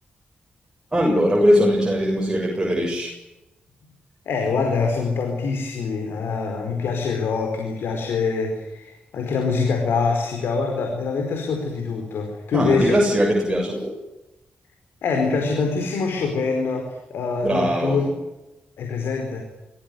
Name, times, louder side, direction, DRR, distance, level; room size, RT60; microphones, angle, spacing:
voice 1, 0.9-3.1 12.5-14.0 17.4-18.0, equal, 20° right, -1 dB, 7.4 m, -20 dB
voice 2, 4.3-13.0 15.0-18.1 18.8-19.4, left 4 dB, 85° left, 3 dB, 4.8 m, -24 dB
24.5 x 16.0 x 9.4 m, 1.0 s
cardioid pair, 60°, 4 cm